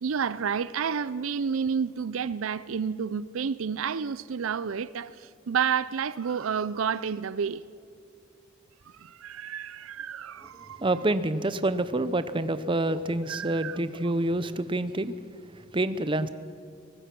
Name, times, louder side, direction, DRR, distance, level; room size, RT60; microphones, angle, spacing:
voice 1, 0.0-7.6 8.9-10.8 12.9-13.0 13.3-13.8, right 6 dB, 75° right, 0.5 m, -30 dB
voice 2, 10.5-15.1 15.5-16.3, right 1 dB, 25° right, 0.7 m, -27 dB
23.5 x 19.0 x 6.0 m
head